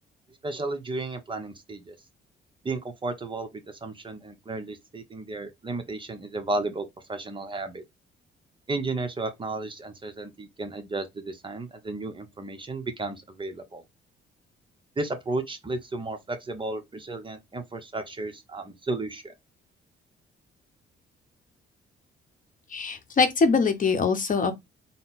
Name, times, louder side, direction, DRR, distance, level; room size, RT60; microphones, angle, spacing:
voice 1, 0.4-2.0 2.6-7.8 8.7-13.8 15.0-19.3, right 2 dB, 25° right, 0.8 m, -33 dB
voice 2, 22.7-24.5, left 4 dB, 40° left, 0.9 m, -23 dB
4.0 x 2.1 x 4.0 m
cardioid pair, 90°, 20 cm